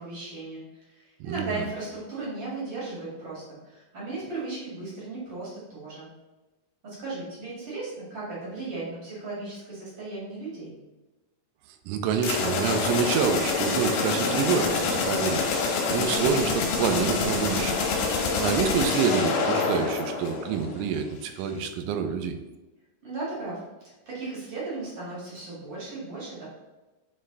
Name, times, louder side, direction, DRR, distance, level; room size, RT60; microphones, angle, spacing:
voice 1, 0.0-6.1 6.8-10.7 23.0-26.4, right 3 dB, 50° right, -7 dB, 1.3 m, -36 dB
voice 2, 1.2-1.6 11.9-15.6 15.9-17.8 18.4-22.3, right 6 dB, 85° right, 7 dB, 3.0 m, -27 dB
sound 1, 12.2-20.8, left 4 dB, 75° left, 3.3 m, -26 dB
8.8 x 3.2 x 3.9 m, 1.1 s
omnidirectional pair, 5.7 m